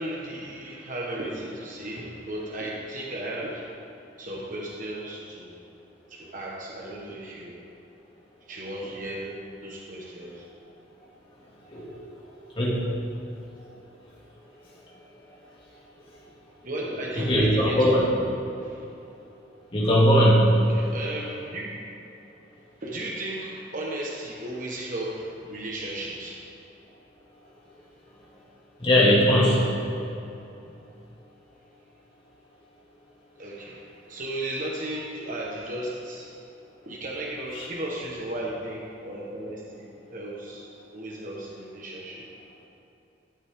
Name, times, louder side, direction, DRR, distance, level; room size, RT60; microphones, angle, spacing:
voice 1, 0.0-3.8 4.2-5.5 6.1-7.5 8.4-9.3 9.6-10.4 16.6-18.0 18.6-18.9 20.7-21.8 22.8-26.4 33.4-36.3 36.8-42.2, right 1 dB, 45° right, -4 dB, 1.3 m, -35 dB
voice 2, 11.6-12.0 12.6-13.0 14.9-15.0 17.2-18.1 19.7-20.8 28.8-29.8 37.5-37.6, equal, 30° left, -6 dB, 2.4 m, -20 dB
13.5 x 7.4 x 3.7 m, 2.9 s
head